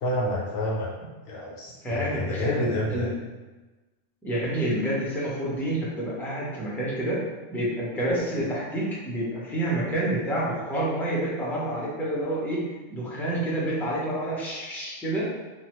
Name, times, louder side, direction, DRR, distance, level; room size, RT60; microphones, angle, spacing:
voice 1, 0.0-0.9 1.2-3.1, left 1 dB, 60° left, -3 dB, 0.7 m, -29 dB
voice 2, 1.8-3.2 4.2-7.2 7.5-12.6 12.9-15.2, right 1 dB, ahead, -6 dB, 0.4 m, -28 dB
3.0 x 2.2 x 2.9 m, 1.2 s
omnidirectional pair, 1.2 m